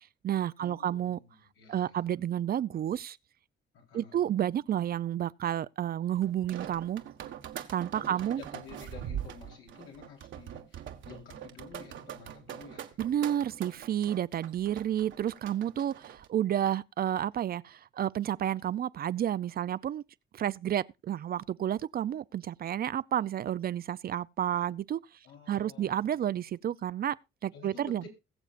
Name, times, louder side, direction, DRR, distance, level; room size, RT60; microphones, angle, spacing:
voice 1, 0.0-1.2 1.7-3.2 3.9-7.0 7.7-8.4 13.0-20.0 20.3-25.0 25.5-27.2 27.4-28.1, right 10 dB, 50° right, 0.5 m, -31 dB
voice 2, 0.6-2.0 3.7-4.2 8.0-13.0 15.7-16.1 25.2-26.3 27.5-28.0, left 6 dB, 85° left, 3.9 m, -51 dB
sound 1, 6.2-16.3, right 10 dB, 75° right, 1.4 m, -43 dB
21.5 x 7.1 x 2.5 m
cardioid pair, 90°, 20 cm